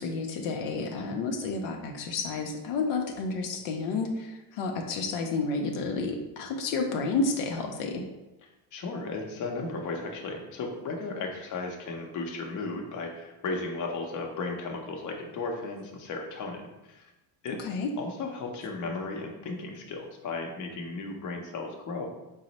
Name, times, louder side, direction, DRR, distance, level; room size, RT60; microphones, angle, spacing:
voice 1, 0.0-8.1 17.6-17.9, left 3 dB, 80° left, 2 dB, 0.6 m, -30 dB
voice 2, 8.7-17.1 17.4-17.6 18.0-22.1, left 3 dB, 45° left, 1 dB, 0.7 m, -35 dB
4.0 x 2.0 x 4.0 m, 1.0 s
cardioid pair, 115°, 44 cm